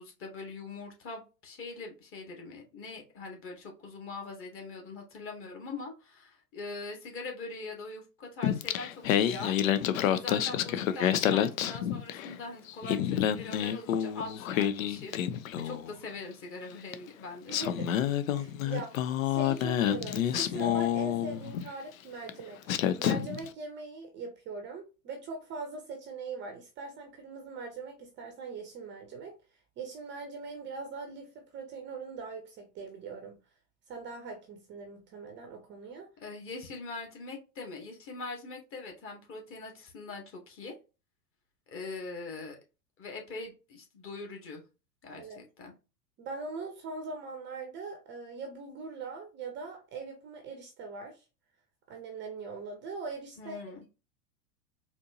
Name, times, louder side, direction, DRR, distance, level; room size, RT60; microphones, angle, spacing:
voice 1, 0.0-15.2 15.6-17.6 36.2-40.7 41.7-42.6 43.0-44.6 45.0-45.7 53.4-53.8, left 3 dB, 25° left, 1.4 m, -42 dB
Singing, 8.4-12.4 12.7-15.9 16.9-17.0 17.5-21.7 22.3-22.4 22.7-23.5, left 10 dB, 55° left, 0.5 m, -28 dB
voice 2, 17.5-17.9 18.3-22.6 23.0-29.4 29.8-33.4 33.9-36.1 45.1-45.4 46.2-51.2 51.9-53.6, right 4 dB, 25° right, 0.7 m, -41 dB
4.2 x 2.9 x 2.6 m
figure-of-eight pair, 90°, 49 cm